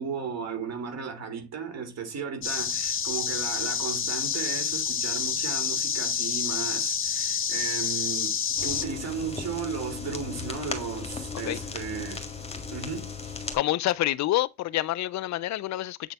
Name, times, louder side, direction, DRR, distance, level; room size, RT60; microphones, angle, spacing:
voice 1, 0.0-12.2 12.7-13.3, right 6 dB, 60° right, 2.4 m, -35 dB
sound 1, 2.4-8.8, left 7 dB, 45° left, 1.2 m, -28 dB
sound 2, 8.6-13.6, left 4 dB, 20° left, 1.7 m, -36 dB
voice 2, 13.5-16.1, left 15 dB, 65° left, 0.5 m, -27 dB
7.9 x 3.9 x 3.4 m
cardioid pair, 90°, 30 cm